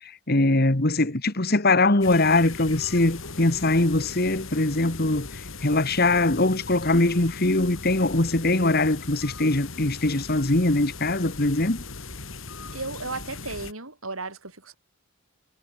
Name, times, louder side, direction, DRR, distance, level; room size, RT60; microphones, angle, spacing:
voice 1, 0.3-5.3 5.6-11.8, left 2 dB, 45° left, 1.7 m, -22 dB
sound 1, 2.0-13.7, left 3 dB, 65° left, 3.7 m, -39 dB
voice 2, 12.7-14.7, right 3 dB, 75° right, 7.1 m, -35 dB
head